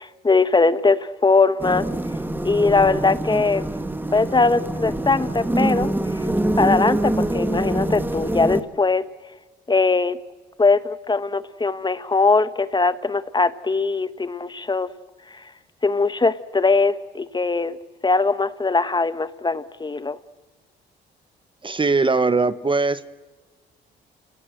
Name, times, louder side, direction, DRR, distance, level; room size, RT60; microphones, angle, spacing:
voice 1, 0.0-1.9 2.4-3.7 4.1-6.3 6.6-9.1 9.7-10.2 10.6-14.9 15.3-15.4 15.8-17.8 18.0-20.2, left 3 dB, 20° left, 14 dB, 1.0 m, -20 dB
sound 1, 1.6-8.6, right 1 dB, 10° right, 1.7 m, -25 dB
voice 2, 21.6-23.2, right 3 dB, 25° right, 15 dB, 0.9 m, -21 dB
29.5 x 19.5 x 7.8 m, 1.3 s
cardioid pair, 90°, 20 cm